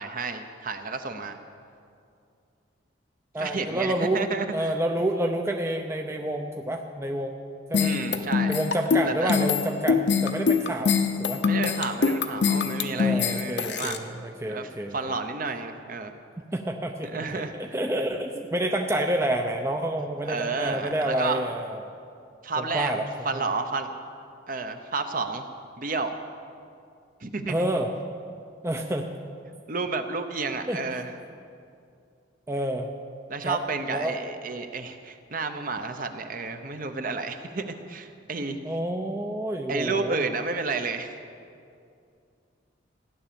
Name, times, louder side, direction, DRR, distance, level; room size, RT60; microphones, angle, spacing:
voice 1, 0.0-1.4 3.4-4.7 7.8-8.6 9.1-9.3 11.5-14.0 14.5-16.1 17.0-17.6 20.3-21.4 22.4-22.9 23.2-23.9 24.5-25.4 25.8-26.1 27.2-27.7 29.7-31.1 33.3-38.6 39.7-41.2, right 4 dB, 45° right, 7 dB, 0.9 m, -31 dB
voice 2, 3.3-4.2 4.5-7.4 7.7-7.9 8.5-11.4 12.9-15.1 16.5-21.9 22.6-23.1 23.3-23.4 27.5-27.9 28.6-29.1 30.7-30.8 32.5-32.9 33.4-33.6 33.9-34.1 38.6-40.3, right 1 dB, 15° right, 3 dB, 0.6 m, -29 dB
sound 1, 7.7-14.0, left 5 dB, 60° left, 0.9 m, -23 dB
16.0 x 10.0 x 7.0 m, 2.4 s
head